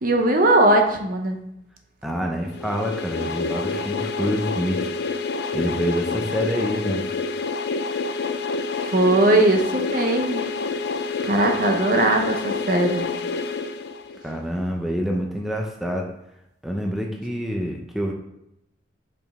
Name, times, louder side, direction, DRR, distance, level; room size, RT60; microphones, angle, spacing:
voice 1, 0.0-1.4 8.8-10.5 11.2-13.1, right 2 dB, 45° right, 4 dB, 0.7 m, -19 dB
voice 2, 2.0-4.9 5.5-7.1 14.2-16.1 16.6-18.1, equal, ahead, 0 dB, 0.6 m, -27 dB
sound 1, 2.6-14.4, left 4 dB, 60° left, 0.4 m, -28 dB
5.2 x 5.2 x 3.6 m, 0.82 s
head